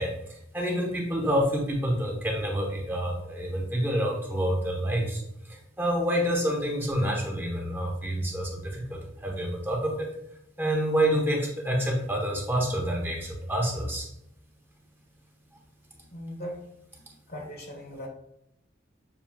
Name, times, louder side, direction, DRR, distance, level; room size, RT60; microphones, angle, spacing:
voice 1, 0.0-10.1 10.6-14.1, equal, 10° right, -1 dB, 0.8 m, -28 dB
voice 2, 16.1-16.6 17.3-18.1, equal, 55° left, 1 dB, 1.0 m, -38 dB
6.9 x 2.6 x 2.8 m, 0.77 s
head